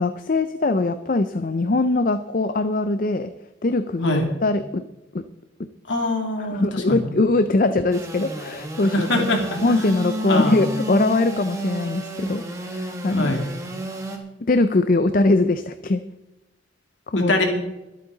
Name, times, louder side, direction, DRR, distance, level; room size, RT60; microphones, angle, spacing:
voice 1, 0.0-3.3 3.6-4.8 5.1-5.3 5.6-5.7 6.4-9.3 9.6-13.4 14.4-16.0 17.1-17.3, left 2 dB, 45° left, 11 dB, 0.5 m, -22 dB
voice 2, 5.9-7.1 8.9-9.8 10.3-10.7 13.1-13.5 17.1-17.4, left 2 dB, 75° left, 3 dB, 2.7 m, -23 dB
Engine / Sawing, 7.9-14.2, equal, 15° right, 1.6 m, -31 dB
22.5 x 8.5 x 4.0 m, 0.99 s
head